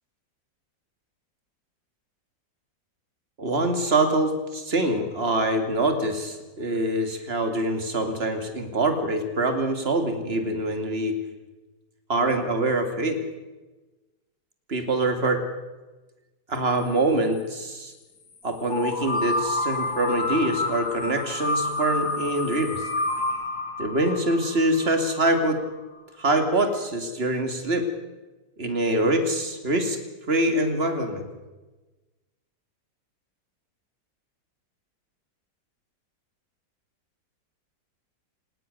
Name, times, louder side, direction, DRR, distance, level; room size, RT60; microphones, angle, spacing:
voice 1, 3.4-11.2 12.1-13.2 14.7-15.4 16.5-17.9 18.4-22.8 23.8-25.6 26.2-27.9 28.6-30.0 30.3-31.3, right 1 dB, 35° right, 7 dB, 2.6 m, -24 dB
sound 1, 18.7-25.5, left 2 dB, 60° left, 2.7 m, -29 dB
28.0 x 18.5 x 6.8 m, 1.2 s
omnidirectional pair, 2.0 m